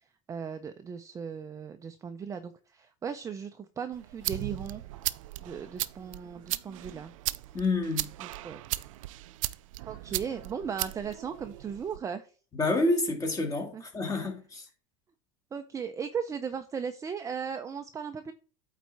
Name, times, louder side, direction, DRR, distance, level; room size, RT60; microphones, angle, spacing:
voice 1, 0.3-4.8 5.4-7.1 8.2-8.6 9.8-12.3 13.7-13.8 15.5-18.3, right 6 dB, 20° right, 0.6 m, -37 dB
sound 1, 3.9-12.0, right 16 dB, 80° right, 0.5 m, -37 dB
voice 2, 7.5-8.1 12.6-14.7, left 2 dB, 20° left, 2.3 m, -28 dB
8.8 x 4.1 x 4.7 m
supercardioid pair, 125°, 17 cm